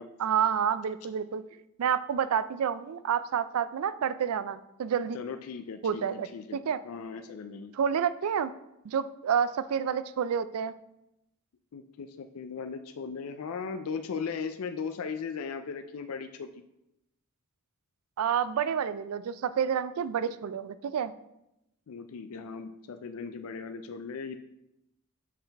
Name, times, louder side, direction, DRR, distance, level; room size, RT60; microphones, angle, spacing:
voice 1, 0.2-1.4 1.8-5.2 5.8-6.3 6.5-6.8 7.7-8.5 8.8-10.7 18.2-21.1, right 8 dB, 90° right, 14 dB, 0.4 m, -29 dB
voice 2, 5.1-7.7 11.7-16.6 21.9-24.4, left 5 dB, 90° left, 8 dB, 0.4 m, -38 dB
6.4 x 5.8 x 3.4 m, 0.86 s
head